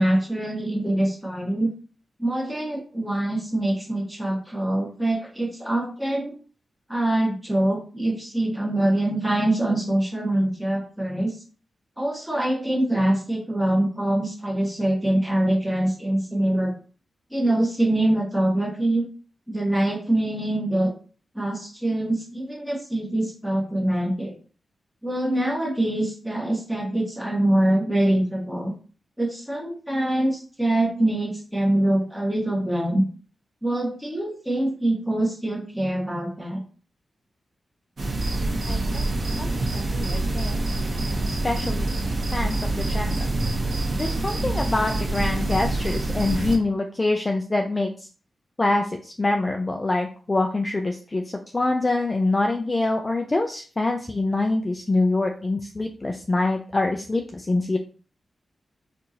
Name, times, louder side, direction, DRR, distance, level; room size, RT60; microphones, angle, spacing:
voice 1, 0.0-1.7 2.2-6.3 6.9-11.3 12.0-16.7 17.3-19.0 19.5-20.9 21.3-24.4 25.0-28.7 29.2-33.0 33.6-36.6, right 1 dB, 5° right, -1 dB, 1.1 m, -24 dB
sound 1, 38.0-46.6, right 2 dB, 50° right, 0.9 m, -26 dB
voice 2, 38.7-39.1 39.4-40.6 41.4-41.9 42.3-43.3 44.0-47.9 48.6-51.2 51.5-57.8, left 2 dB, 25° left, 3 dB, 0.3 m, -25 dB
4.4 x 2.5 x 2.7 m, 0.38 s
wide cardioid pair, 115°, 0 cm